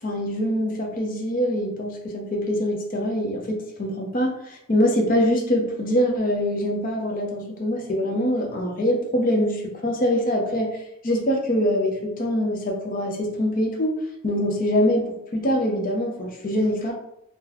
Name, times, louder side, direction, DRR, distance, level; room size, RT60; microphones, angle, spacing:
voice 1, 0.0-10.8 11.0-14.0 14.2-16.9, equal, 45° left, 1 dB, 0.7 m, -24 dB
2.9 x 2.1 x 3.8 m, 0.79 s
head